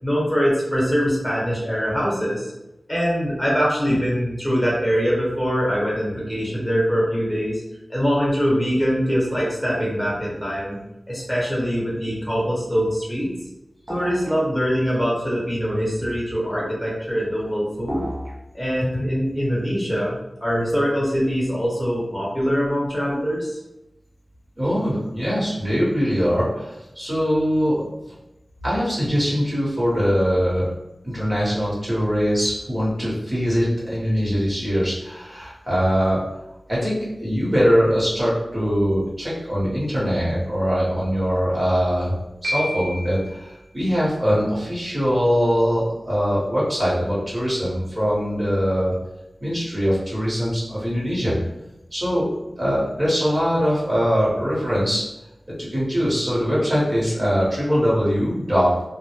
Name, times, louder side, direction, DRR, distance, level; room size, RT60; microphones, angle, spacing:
voice 1, 0.0-2.5 2.9-7.6 7.9-10.8 11.1-13.3 13.9-18.1 18.5-23.6, equal, 10° left, -6 dB, 1.0 m, -23 dB
sound 1, 13.9-14.3 17.9-18.3, equal, 60° right, 0.7 m, -33 dB
voice 2, 24.6-28.1 28.6-30.6 31.0-36.2 36.7-42.1 42.4-48.9 49.4-51.3 51.9-52.3 52.6-55.0 55.6-58.8, equal, 40° right, -7 dB, 1.1 m, -22 dB
Piano, 42.4-43.4, equal, 85° right, 0.8 m, -29 dB
2.1 x 2.1 x 2.9 m, 0.92 s
wide cardioid pair, 50°, 0 cm